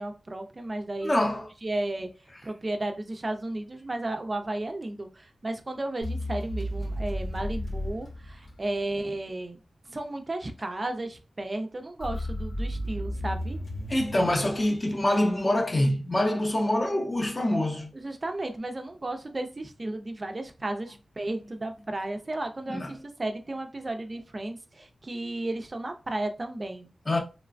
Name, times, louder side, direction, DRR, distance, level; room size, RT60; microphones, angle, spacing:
voice 1, 0.0-1.2 1.6-2.1 2.4-9.6 9.8-13.6 17.9-26.9, right 2 dB, 30° right, 0.4 m, -34 dB
voice 2, 1.0-1.5 13.9-17.9 22.7-22.9 27.1-27.2, left 1 dB, 30° left, 0.6 m, -25 dB
sound 1, 6.0-9.0 12.0-15.4, equal, 85° left, 1.0 m, -34 dB
3.1 x 2.1 x 2.4 m
wide cardioid pair, 115°, 0 cm